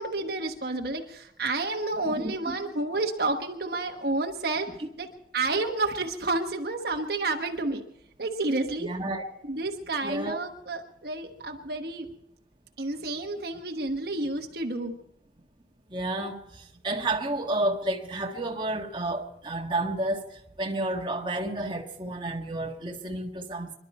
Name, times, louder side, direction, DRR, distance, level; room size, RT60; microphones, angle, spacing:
voice 1, 0.0-4.7 5.0-5.1 5.3-7.8 8.2-8.9 9.5-12.1 12.8-14.9, right 2 dB, 60° right, 1.3 m, -30 dB
voice 2, 2.1-2.6 4.8-4.9 8.8-9.2 10.0-10.4 15.9-23.7, right 2 dB, 25° right, 1.5 m, -31 dB
25.5 x 11.5 x 4.2 m
head